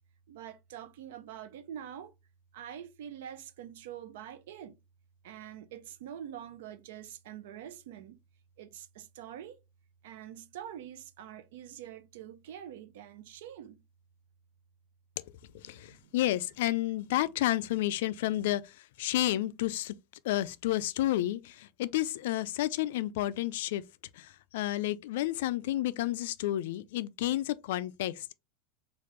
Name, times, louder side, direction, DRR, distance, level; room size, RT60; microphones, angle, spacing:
voice 1, 0.3-2.1 2.5-4.8 5.2-8.2 8.6-9.6 10.0-13.8 15.5-16.1 17.0-17.1, right 10 dB, 85° right, 0.5 m, -45 dB
voice 2, 15.5-19.9 20.2-23.8 24.1-28.3, left 14 dB, 75° left, 0.3 m, -31 dB
3.3 x 2.4 x 3.1 m
supercardioid pair, 170°, 0 cm